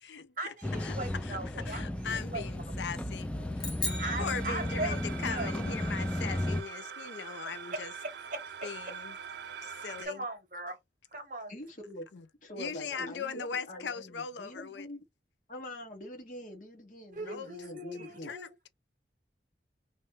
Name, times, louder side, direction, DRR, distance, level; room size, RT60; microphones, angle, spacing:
voice 1, 0.4-2.4 3.5-3.6 4.0-5.5 8.3-8.6 10.0-10.8 11.1-11.5 17.1-18.5, right 2 dB, 45° right, 1.0 m, -39 dB
sound 1, 0.6-6.6, left 1 dB, 5° left, 0.4 m, -34 dB
voice 2, 1.6-3.3 4.2-7.9 8.6-9.2 9.6-10.2 12.1-12.3 12.6-14.9 17.2-17.5 18.2-18.7, left 6 dB, 85° left, 0.5 m, -39 dB
sound 2, 3.6-5.2, left 3 dB, 25° left, 1.3 m, -38 dB
sound 3, 3.8-10.1, right 6 dB, 70° right, 0.4 m, -44 dB
voice 3, 11.5-12.1 12.4-15.0 15.5-18.3, left 1 dB, 45° left, 1.2 m, -44 dB
3.1 x 2.8 x 3.2 m
head